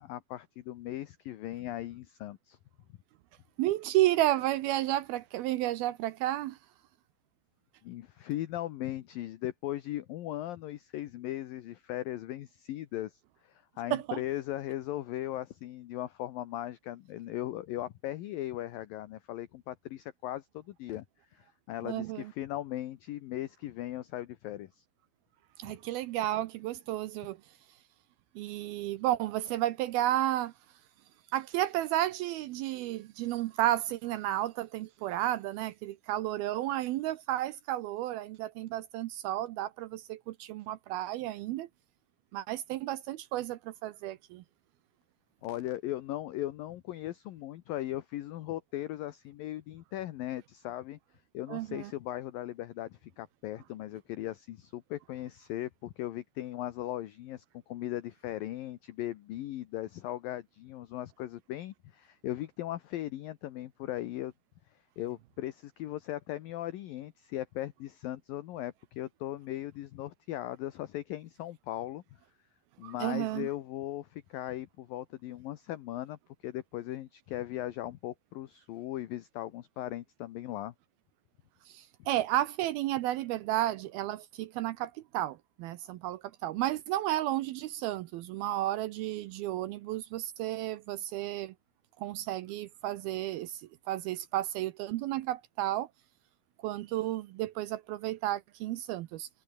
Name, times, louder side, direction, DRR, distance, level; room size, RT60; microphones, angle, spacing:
voice 1, 0.0-2.6 7.8-21.1 21.3-24.8 25.6-25.8 45.4-51.0 51.3-64.3 65.0-72.0 72.8-80.7, left 14 dB, 70° left, 2.4 m, -38 dB
voice 2, 3.6-6.6 13.9-14.2 21.8-22.3 25.6-27.4 28.4-30.5 31.3-41.7 42.3-44.4 51.5-51.9 72.8-73.5 81.7-91.5 92.0-95.9 96.6-99.3, right 14 dB, 75° right, 2.3 m, -32 dB
omnidirectional pair, 5.1 m